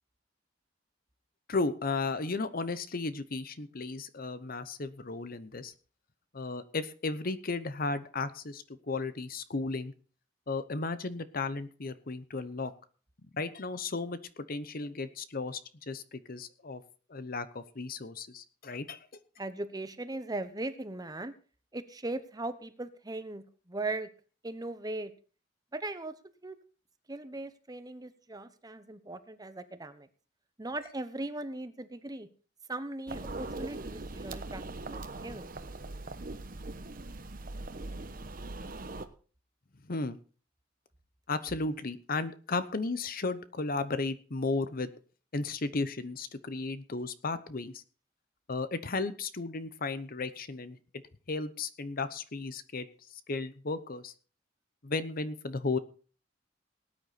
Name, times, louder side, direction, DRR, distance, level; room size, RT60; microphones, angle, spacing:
voice 1, 1.5-5.7 6.3-9.9 10.5-12.7 13.2-16.8 17.1-19.0 39.9-40.2 41.3-44.9 45.3-47.8 48.5-50.8 51.3-52.9 53.1-54.1 54.8-55.8, left 3 dB, 50° left, 13 dB, 0.9 m, -34 dB
voice 2, 19.4-21.3 21.7-24.1 24.4-25.1 25.7-26.1 26.4-26.6 27.1-30.1 30.6-32.3 32.7-34.6 34.9-35.5, right 2 dB, 20° right, 11 dB, 1.0 m, -38 dB
sound 1, 33.1-39.1, right 2 dB, 50° right, 1.1 m, -41 dB
18.5 x 9.4 x 4.2 m, 0.39 s
head